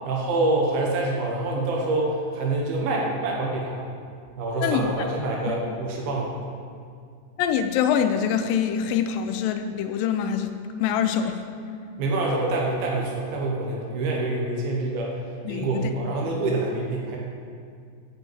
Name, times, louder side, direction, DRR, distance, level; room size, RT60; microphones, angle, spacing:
voice 1, 0.0-3.8 4.4-6.4 12.0-15.2 15.5-17.2, right 2 dB, 90° right, -2 dB, 2.9 m, -26 dB
voice 2, 4.6-5.1 5.5-5.6 7.4-11.4 15.5-15.9, left 8 dB, 80° left, 7 dB, 2.2 m, -25 dB
8.7 x 5.1 x 7.6 m, 2.2 s
omnidirectional pair, 4.2 m